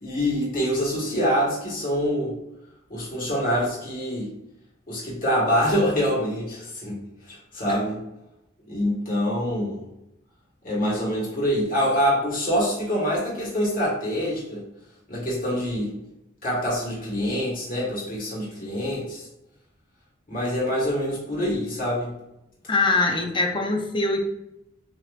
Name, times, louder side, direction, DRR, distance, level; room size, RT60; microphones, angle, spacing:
voice 1, 0.0-2.3 2.9-4.3 4.9-8.0 8.7-9.8 10.6-14.7 15.1-16.0 16.4-19.3 20.3-22.1, equal, 45° left, -6 dB, 1.5 m, -25 dB
voice 2, 22.7-24.2, left 3 dB, 25° left, 3 dB, 0.5 m, -23 dB
6.6 x 2.9 x 2.5 m, 0.86 s
head